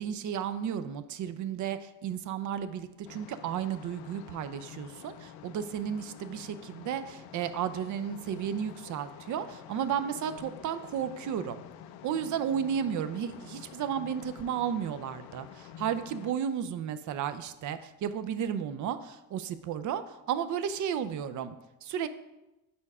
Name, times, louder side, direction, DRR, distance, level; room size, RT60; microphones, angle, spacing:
voice 1, 0.0-11.6 12.0-21.6 21.8-22.1, right 8 dB, 55° right, 12 dB, 0.5 m, -33 dB
sound 1, 3.0-16.3, left 9 dB, 80° left, 0.5 m, -49 dB
4.8 x 4.4 x 5.4 m, 0.99 s
cardioid pair, 100°, 37 cm